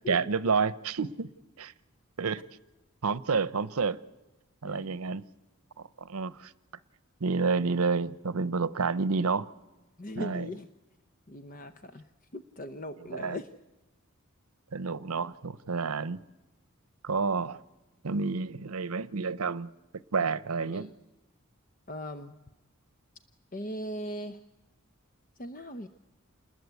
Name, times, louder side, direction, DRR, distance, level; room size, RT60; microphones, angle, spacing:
voice 1, 0.1-1.3 1.6-1.7 2.2-2.4 3.0-4.0 4.6-5.2 6.0-6.5 7.2-9.5 10.1-10.5 13.0-13.4 14.7-16.2 17.0-17.6 18.0-19.7 20.1-20.9, right 4 dB, 80° right, 18 dB, 0.8 m, -29 dB
voice 2, 10.0-10.7 11.3-12.0 12.3-13.5 20.6-20.9 21.9-22.4 23.5-24.4 25.4-25.9, equal, 40° left, 10 dB, 0.8 m, -39 dB
28.5 x 20.5 x 8.3 m, 1.1 s
head